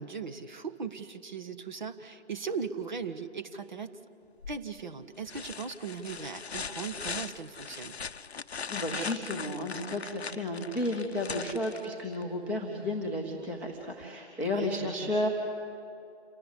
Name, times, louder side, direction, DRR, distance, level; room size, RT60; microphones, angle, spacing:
voice 1, 0.0-3.9 4.5-8.0 14.4-15.1, right 5 dB, 45° right, 9 dB, 1.1 m, -38 dB
sound 1, 4.4-4.8 5.3-12.2 14.0-14.1, left 5 dB, 70° left, 0.7 m, -40 dB
voice 2, 8.7-15.3, left 1 dB, 5° right, -1 dB, 0.8 m, -32 dB
27.5 x 18.0 x 8.3 m, 2.6 s
figure-of-eight pair, 145°, 34 cm